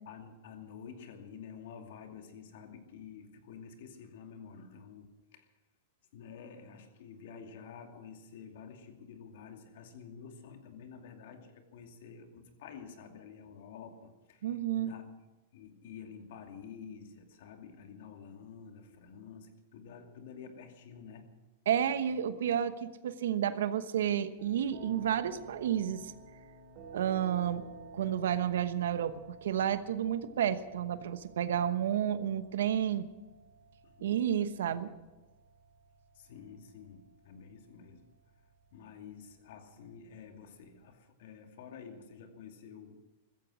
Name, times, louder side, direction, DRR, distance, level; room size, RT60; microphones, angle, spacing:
voice 1, 0.0-5.5 6.1-15.1 15.5-21.3 33.8-34.1 36.1-38.1 38.7-43.0, left 6 dB, 65° left, 5 dB, 2.5 m, -50 dB
voice 2, 14.4-14.9 21.7-26.1 26.9-27.6 27.9-33.0 34.0-34.9, right 9 dB, 85° right, 12 dB, 1.0 m, -31 dB
sound 1, 24.4-40.9, right 4 dB, 45° right, 3.5 m, -54 dB
16.0 x 14.5 x 6.3 m, 1.2 s
supercardioid pair, 150°, 0 cm